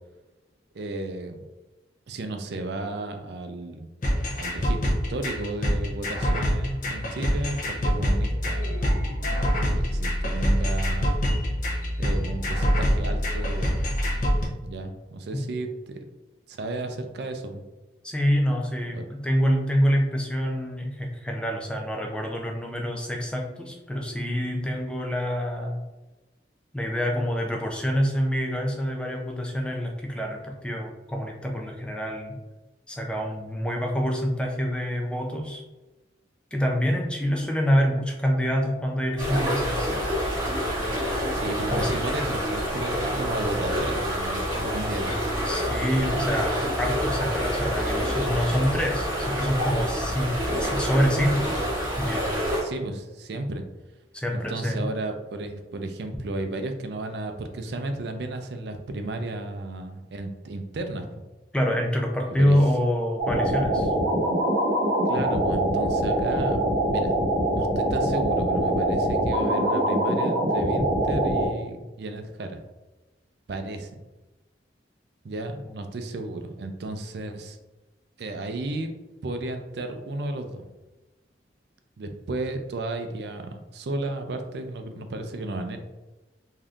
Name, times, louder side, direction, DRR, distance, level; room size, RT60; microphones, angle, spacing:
voice 1, 0.7-1.4 2.1-3.9 4.2-8.9 9.3-11.1 12.0-13.8 14.6-16.0 16.5-17.6 18.9-19.1 41.3-45.1 46.0-46.1 52.6-53.6 54.3-61.2 62.3-62.6 65.0-66.6 66.9-67.1 67.6-72.6 73.5-74.0 75.2-77.6 78.2-78.9 79.2-80.7 82.0-85.8, right 2 dB, 60° right, 6 dB, 0.4 m, -33 dB
sound 1, 4.0-14.5, equal, 45° left, 0.6 m, -25 dB
voice 2, 18.0-25.8 26.7-32.4 32.9-35.6 36.5-40.4 41.7-41.9 45.4-51.6 52.0-52.3 54.1-54.9 61.5-63.9 75.6-75.7, equal, 5° left, 0 dB, 0.4 m, -26 dB
sound 2, 39.2-52.6, equal, 25° right, 1.5 m, -27 dB
sound 3, 63.2-71.5, right 1 dB, 85° right, 0.8 m, -24 dB
3.4 x 2.7 x 2.4 m, 1.1 s
head